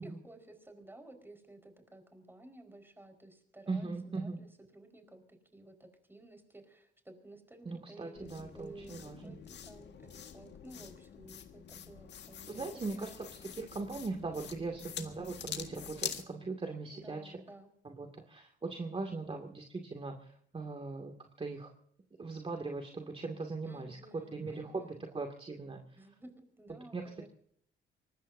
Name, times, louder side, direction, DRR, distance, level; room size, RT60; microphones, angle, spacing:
voice 1, 0.0-13.1 14.4-14.8 16.8-17.7 23.6-25.0 26.0-27.3, right 1 dB, 10° right, 6 dB, 4.9 m, -54 dB
voice 2, 3.7-4.4 7.6-9.4 12.5-13.3 13.5-17.3 17.8-21.7 22.2-24.0 24.3-26.0 26.7-27.3, right 3 dB, 30° right, 3 dB, 2.4 m, -40 dB
sound 1, 8.1-16.3, left 8 dB, 60° left, 1.8 m, -46 dB
24.5 x 19.5 x 2.7 m, 0.66 s
cardioid pair, 90°, 20 cm